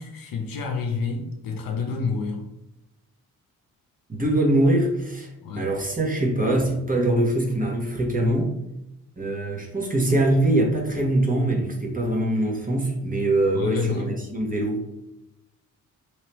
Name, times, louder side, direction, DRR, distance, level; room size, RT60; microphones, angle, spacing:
voice 1, 0.0-2.4 5.4-5.7 13.5-14.1, left 4 dB, 50° left, 0.8 m, -29 dB
voice 2, 4.1-5.3 5.6-8.5 9.2-14.9, right 1 dB, 20° right, 1.1 m, -23 dB
3.2 x 3.1 x 3.0 m
hypercardioid pair, 45°, 43 cm